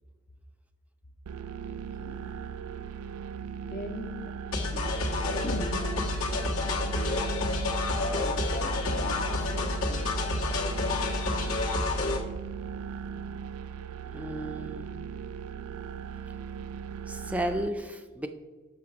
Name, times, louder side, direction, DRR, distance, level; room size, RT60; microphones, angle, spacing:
sound 1, 1.3-17.7, right 7 dB, 85° right, 0.4 m, -39 dB
voice 1, 1.7-2.3 3.6-5.0 5.4-7.2 7.9-10.3, left 2 dB, 40° left, 3 dB, 0.6 m, -41 dB
sound 2, 4.5-12.2, left 2 dB, 80° left, 1.3 m, -29 dB
voice 2, 14.1-15.0 17.1-18.3, right 1 dB, 5° right, 6 dB, 0.4 m, -33 dB
7.7 x 6.4 x 4.8 m, 1.4 s
head